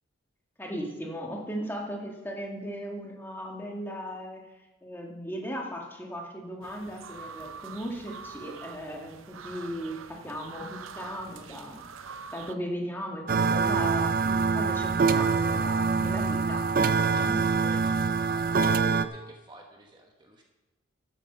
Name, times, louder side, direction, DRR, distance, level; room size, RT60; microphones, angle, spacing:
voice 1, 0.6-4.4 4.8-16.7, equal, 10° left, 0 dB, 1.6 m, -37 dB
sound 1, 6.6-12.5, right 6 dB, 85° right, 0.7 m, -45 dB
sound 2, 13.3-19.0, right 5 dB, 45° right, 0.4 m, -25 dB
voice 2, 17.0-20.4, right 2 dB, 20° right, 1 dB, 1.2 m, -47 dB
13.0 x 7.8 x 5.5 m, 1.1 s
head